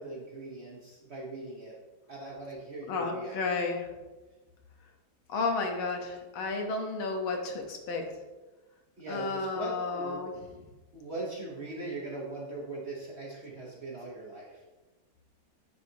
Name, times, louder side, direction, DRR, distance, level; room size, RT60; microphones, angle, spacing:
voice 1, 0.0-1.7 2.1-3.4 9.0-10.3 10.9-14.6, right 2 dB, 45° right, -4 dB, 0.9 m, -40 dB
voice 2, 2.9-3.9 5.3-8.0 9.1-10.6, left 3 dB, 80° left, 3 dB, 1.8 m, -32 dB
9.5 x 4.9 x 2.7 m, 1.2 s
omnidirectional pair, 2.2 m